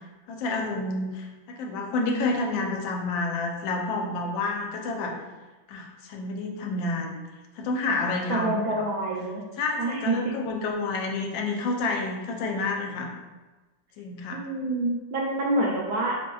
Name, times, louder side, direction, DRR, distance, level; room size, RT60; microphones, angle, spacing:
voice 1, 0.3-5.1 5.7-7.2 7.6-8.5 9.6-13.1 14.0-14.4, left 3 dB, 90° left, 1 dB, 1.4 m, -29 dB
voice 2, 8.3-9.4 9.8-10.3 14.3-16.2, right 2 dB, 75° right, -2 dB, 0.9 m, -27 dB
4.2 x 3.1 x 2.2 m, 1.2 s
omnidirectional pair, 2.0 m